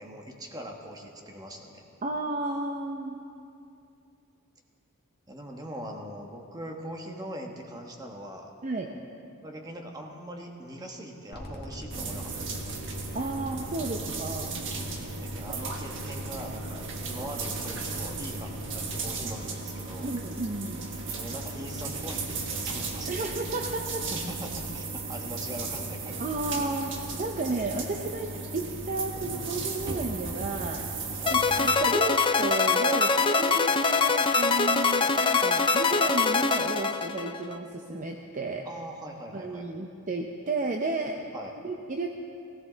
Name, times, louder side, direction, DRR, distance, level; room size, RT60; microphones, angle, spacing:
voice 1, 0.0-1.8 5.3-8.5 9.4-12.8 15.2-20.1 21.0-23.3 24.1-26.2 31.2-31.4 38.6-39.6 41.3-41.6, equal, 15° right, 2 dB, 1.3 m, -41 dB
voice 2, 2.0-3.2 8.6-8.9 13.1-14.5 20.0-20.8 23.1-24.0 26.2-30.8 31.3-38.6 39.3-41.2 41.6-42.1, right 2 dB, 35° right, 3 dB, 0.6 m, -32 dB
sound 1, 11.3-19.3, equal, 45° left, 1.8 m, -43 dB
sound 2, 11.9-31.7, right 3 dB, 55° right, 1.4 m, -35 dB
sound 3, 31.3-37.6, left 4 dB, 20° left, 0.4 m, -24 dB
17.0 x 16.0 x 4.0 m, 2.6 s
head